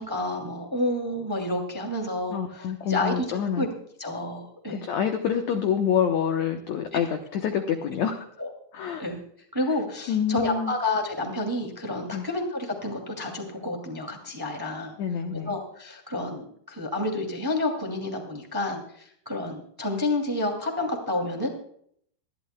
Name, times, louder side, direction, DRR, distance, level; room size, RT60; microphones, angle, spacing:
voice 1, 0.0-3.2 3.5-3.7 4.0-4.9 8.4-8.5 9.0-9.2 9.5-14.9 15.4-21.5, left 2 dB, 10° right, 3 dB, 1.4 m, -29 dB
voice 2, 2.3-3.7 4.8-8.2 8.7-9.0 10.1-10.8 12.1-12.3 15.0-15.5, left 8 dB, 75° left, 5 dB, 1.6 m, -27 dB
25.0 x 11.5 x 2.3 m, 0.65 s
omnidirectional pair, 4.6 m